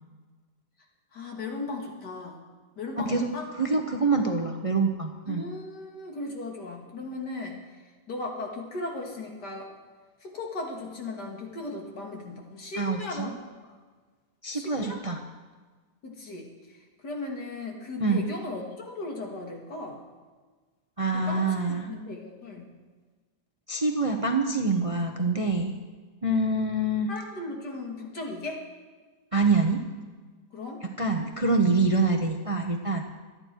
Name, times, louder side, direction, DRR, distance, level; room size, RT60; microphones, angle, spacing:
voice 1, 1.1-2.4 2.8-3.5 5.3-7.6 8.1-9.7 10.2-13.4 14.5-15.0 16.0-20.0 21.1-21.4 21.9-22.7 27.1-28.6 30.5-30.8, left 2 dB, 75° left, 0 dB, 2.9 m, -37 dB
voice 2, 3.6-5.4 12.8-13.3 14.4-15.2 18.0-18.3 21.0-21.9 23.7-25.7 26.2-27.1 29.3-29.8 31.0-33.0, right 3 dB, 25° right, 3 dB, 0.8 m, -25 dB
25.0 x 9.8 x 4.6 m, 1.4 s
omnidirectional pair, 1.8 m